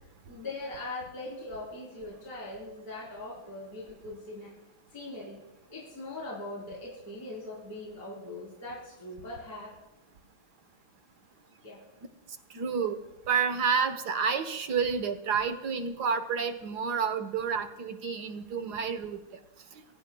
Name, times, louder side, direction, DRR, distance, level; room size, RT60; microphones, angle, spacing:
voice 1, 0.3-4.5 4.9-5.4 5.7-9.8 11.6-11.8, left 2 dB, 40° left, -5 dB, 4.5 m, -41 dB
voice 2, 12.5-13.0 13.3-19.2, right 6 dB, 55° right, 9 dB, 1.6 m, -29 dB
25.0 x 16.5 x 2.3 m, 0.94 s
omnidirectional pair, 2.4 m